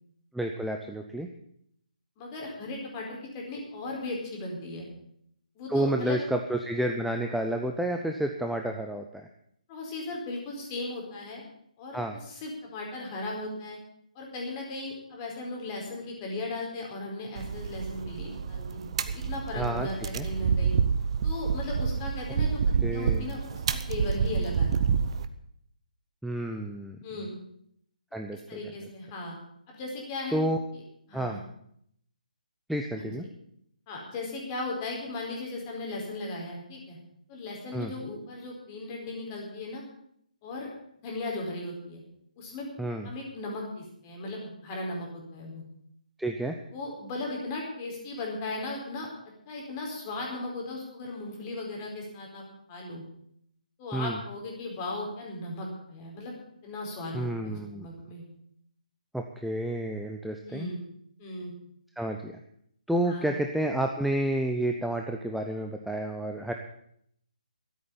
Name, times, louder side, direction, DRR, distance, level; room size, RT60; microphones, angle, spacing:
voice 1, 0.3-1.3 5.7-9.3 11.9-12.2 19.6-19.9 20.1-20.3 22.8-23.3 26.2-27.3 28.1-28.6 30.3-30.6 31.1-31.4 32.7-33.3 37.7-37.9 42.8-43.1 46.2-46.6 53.9-54.2 57.1-57.9 59.1-60.7 62.0-62.3 62.9-66.5, right 1 dB, ahead, 3 dB, 0.6 m, -30 dB
voice 2, 2.2-4.9 5.6-6.2 9.7-11.4 11.8-13.8 14.1-20.8 21.2-22.6 22.9-25.0 27.0-27.3 28.1-29.3 29.7-30.4 31.1-31.4 32.9-33.1 33.9-37.0 37.3-39.8 40.4-40.7 41.0-42.0 42.4-42.7 43.0-45.6 46.7-49.1 49.5-52.4 52.7-53.0 53.8-56.3 56.6-58.2 60.4-60.8 61.2-61.5 63.0-63.3, left 2 dB, 25° left, -1 dB, 4.5 m, -37 dB
sound 1, 17.4-25.3, right 6 dB, 40° right, 0.9 m, -28 dB
13.5 x 8.5 x 8.6 m, 0.70 s
figure-of-eight pair, 150°, 4 cm